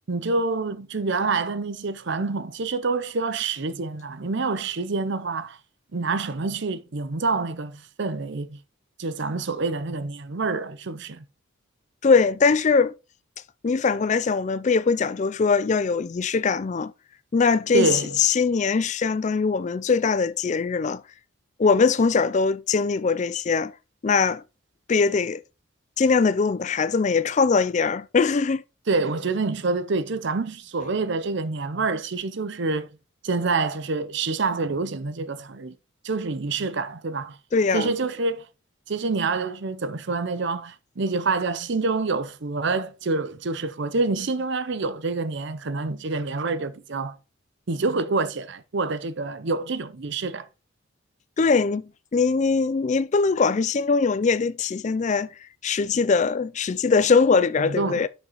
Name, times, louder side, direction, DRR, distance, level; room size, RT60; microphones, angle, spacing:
voice 1, 0.1-5.6 5.9-8.6 9.0-11.2 17.7-18.2 28.9-32.9 33.2-35.7 36.0-37.4 37.7-38.5 38.9-47.2 47.7-50.5 57.6-58.1, right 3 dB, 55° right, 0.6 m, -27 dB
voice 2, 12.0-12.9 13.6-16.9 17.3-17.9 18.2-21.0 21.6-23.7 24.0-24.4 24.9-25.4 26.0-28.6 37.5-37.9 51.4-55.3 55.6-58.1, left 4 dB, 35° left, 0.3 m, -21 dB
10.5 x 6.2 x 3.0 m
head